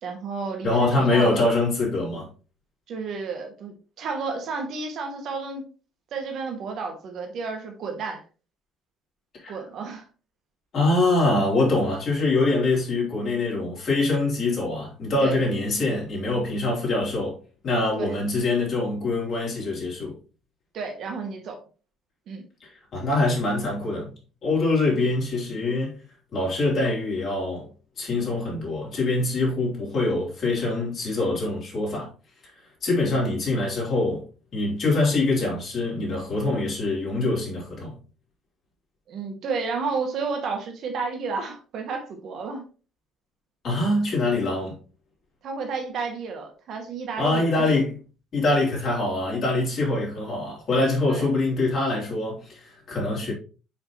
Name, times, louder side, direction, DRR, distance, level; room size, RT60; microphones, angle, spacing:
voice 1, 0.0-1.4 2.9-5.7 6.1-8.2 9.5-10.0 15.2-15.4 18.0-18.2 20.7-21.6 22.3-22.4 39.1-42.6 45.4-47.8 51.1-51.3, right 4 dB, 50° right, 1.8 m, -31 dB
voice 2, 0.6-2.3 9.4-9.5 10.7-17.4 17.6-20.2 22.6-24.1 24.4-26.0 26.3-27.7 28.0-32.1 32.8-34.2 34.5-38.0 43.6-44.8 47.2-47.9 48.3-53.3, left 2 dB, 45° left, 3.5 m, -24 dB
6.5 x 5.4 x 3.1 m
figure-of-eight pair, 50°, 0 cm